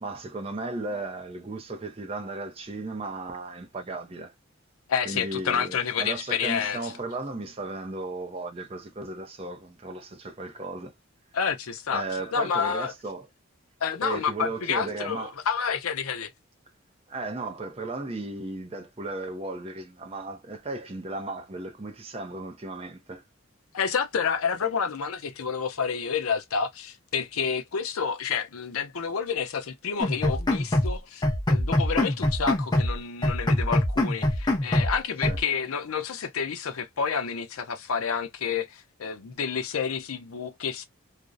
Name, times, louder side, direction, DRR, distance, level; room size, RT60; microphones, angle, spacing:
voice 1, 0.0-4.3 5.0-10.9 11.9-13.3 14.0-15.3 17.1-23.2 35.3-35.4, right 2 dB, 25° right, 0.5 m, -35 dB
voice 2, 4.9-6.9 11.3-12.0 12.3-12.9 13.8-16.3 23.7-40.8, left 6 dB, 85° left, 0.5 m, -29 dB
sound 1, 30.0-31.0 31.2-33.0 33.2-35.0 35.2-35.4, left 1 dB, 20° left, 0.6 m, -24 dB
2.4 x 2.0 x 2.5 m
head